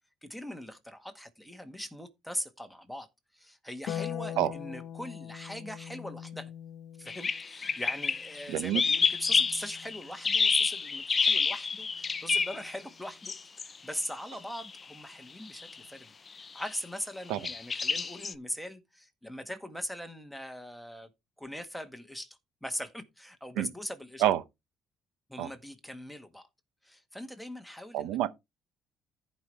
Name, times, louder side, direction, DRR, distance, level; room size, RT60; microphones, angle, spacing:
voice 1, 0.2-3.1 3.3-6.5 7.0-16.1 16.5-21.1 21.4-24.2 25.3-26.5 26.8-28.1, equal, ahead, 1.7 m, -41 dB
Harp, 3.9-10.4 12.0-13.0, left 10 dB, 65° left, 0.8 m, -43 dB
sound 1, 7.1-12.7 13.2-13.8 14.0-14.1 14.5-14.7 15.5-15.8 16.4-16.7 17.4-18.3, left 5 dB, 30° left, 0.6 m, -29 dB
voice 2, 8.5-8.8 17.3-17.4 23.6-23.7 24.2-24.4 25.4-25.5 27.9-28.3, right 12 dB, 90° right, 0.8 m, -27 dB
14.5 x 5.5 x 3.4 m
cardioid pair, 105°, 0 cm